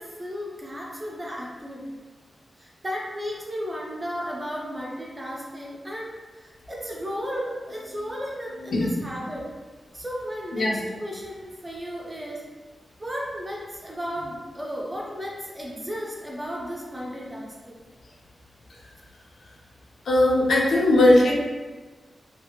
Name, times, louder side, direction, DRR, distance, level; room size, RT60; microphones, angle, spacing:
voice 1, 0.0-2.0 2.6-9.5 9.9-10.7 11.0-12.5 13.0-17.7, equal, 15° right, -3 dB, 0.5 m, -34 dB
voice 2, 8.6-8.9 10.5-10.8 20.0-21.3, left 1 dB, 80° left, -3 dB, 0.6 m, -19 dB
2.8 x 2.5 x 2.8 m, 1.3 s
wide cardioid pair, 160°, 0 cm